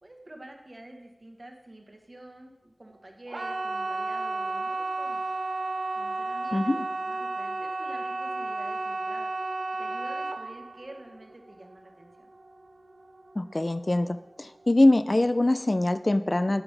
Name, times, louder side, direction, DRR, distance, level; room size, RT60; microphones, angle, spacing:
voice 1, 0.0-5.2 5.9-9.3 9.8-12.3, right 1 dB, 50° right, 2 dB, 1.3 m, -48 dB
sound 1, 3.3-14.1 14.4-15.0 15.4-15.5, right 2 dB, 80° right, 0.5 m, -33 dB
voice 2, 6.5-6.8 13.4-16.6, left 1 dB, 45° left, 12 dB, 0.3 m, -23 dB
9.6 x 7.0 x 3.4 m, 0.96 s
wide cardioid pair, 45°, 0 cm